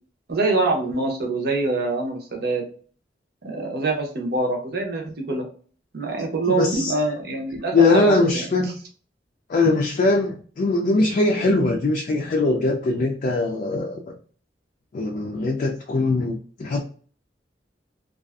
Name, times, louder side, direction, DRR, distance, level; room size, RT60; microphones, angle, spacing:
voice 1, 0.3-2.6 3.4-5.5 5.9-8.2, right 3 dB, 60° right, 1 dB, 0.7 m, -24 dB
voice 2, 6.5-6.9 7.7-8.8 9.5-14.0 14.9-16.8, left 3 dB, 45° left, 0 dB, 0.4 m, -21 dB
2.5 x 2.3 x 2.3 m, 0.43 s
head